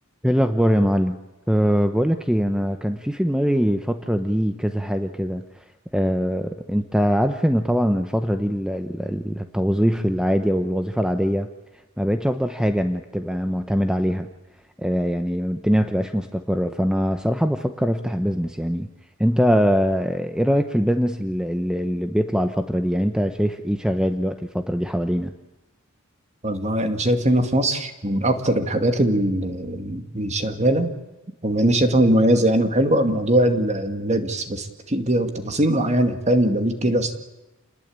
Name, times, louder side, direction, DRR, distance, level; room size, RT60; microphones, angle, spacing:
voice 1, 0.2-1.2 1.5-5.6 5.9-11.5 12.0-14.3 14.8-18.9 19.2-25.3, equal, 5° right, 8 dB, 0.9 m, -22 dB
voice 2, 26.4-30.9 31.4-37.1, right 1 dB, 30° right, 7 dB, 2.3 m, -21 dB
29.0 x 20.0 x 8.9 m, 1.0 s
head